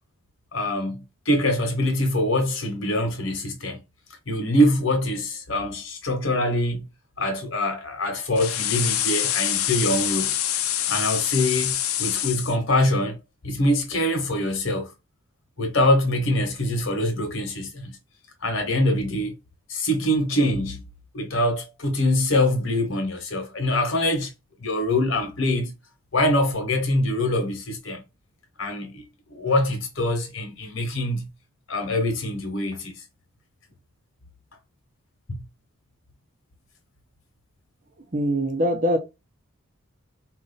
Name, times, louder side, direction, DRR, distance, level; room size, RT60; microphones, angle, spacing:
voice 1, 0.5-3.8 4.3-6.9 7.2-10.4 10.9-13.2 13.4-14.9 15.6-18.0 18.4-19.3 19.7-20.9 21.1-24.3 24.6-25.7 26.1-28.0 28.6-29.0 29.3-31.3 31.7-33.0 35.3-35.4, left 1 dB, 60° left, 1.1 m, -24 dB
sound 1, 8.4-12.5, left 11 dB, 85° left, 0.5 m, -25 dB
voice 2, 38.1-39.0, equal, 40° right, 0.8 m, -22 dB
4.2 x 2.5 x 4.0 m
head